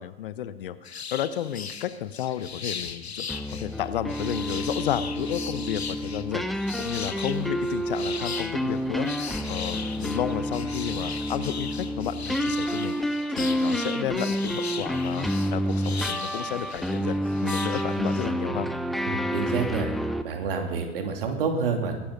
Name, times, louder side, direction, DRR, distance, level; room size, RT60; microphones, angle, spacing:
voice 1, 0.0-17.2 17.4-18.7, left 11 dB, 55° left, 14 dB, 1.0 m, -32 dB
sound 1, 0.8-18.3, left 6 dB, 80° left, 1.2 m, -38 dB
sound 2, 3.3-20.2, equal, ahead, 0.7 m, -29 dB
voice 2, 19.0-19.9 20.2-21.9, right 5 dB, 60° right, 4 dB, 2.9 m, -28 dB
22.0 x 11.5 x 5.4 m, 1.2 s
figure-of-eight pair, 95°, 32 cm